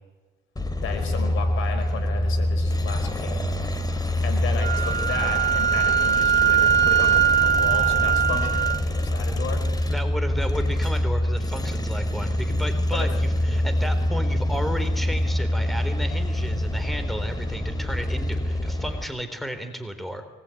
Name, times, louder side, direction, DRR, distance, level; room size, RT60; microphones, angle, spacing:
sound 1, 0.6-19.1, left 1 dB, 20° left, 3.1 m, -25 dB
voice 1, 0.8-3.5 4.2-9.7 12.9-13.1, left 5 dB, 85° left, 5 dB, 4.8 m, -33 dB
Wind instrument woodwind instrument, 4.6-8.8, right 8 dB, 60° right, 2.1 m, -21 dB
voice 2, 9.9-20.2, equal, ahead, 8 dB, 3.7 m, -33 dB
24.0 x 20.0 x 9.2 m, 1.3 s
cardioid pair, 90°, 20 cm